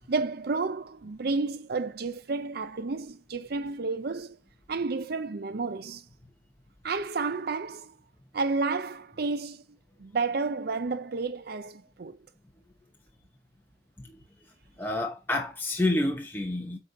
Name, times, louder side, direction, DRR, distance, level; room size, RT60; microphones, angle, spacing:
voice 1, 0.1-4.4 4.7-6.0 6.8-7.9 8.3-9.6 10.0-12.2, right 4 dB, 50° right, 0.5 m, -31 dB
voice 2, 14.8-16.8, left 1 dB, 10° left, 1.0 m, -28 dB
8.6 x 4.2 x 5.2 m
head